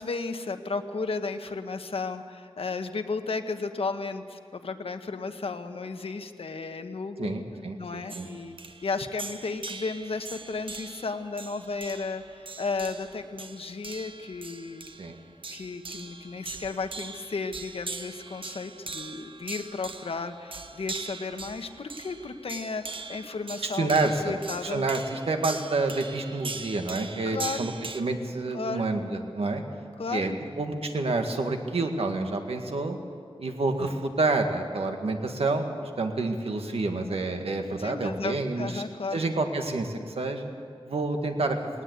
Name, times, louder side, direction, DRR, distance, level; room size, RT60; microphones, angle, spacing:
voice 1, 0.0-7.4 7.8-14.8 15.5-24.8 27.2-27.7 28.5-28.9 30.0-30.4 37.8-39.2, left 4 dB, 80° left, 7 dB, 1.2 m, -34 dB
voice 2, 7.2-8.3 15.0-15.2 23.6-24.3 24.6-29.6 30.1-30.3 30.6-33.0 33.4-38.8 39.1-40.5 40.8-41.7, right 3 dB, 90° right, 5 dB, 1.8 m, -28 dB
sound 1, 8.1-28.0, right 4 dB, 65° right, 1.1 m, -41 dB
19.0 x 18.5 x 8.2 m, 2.3 s
wide cardioid pair, 100°, 10 cm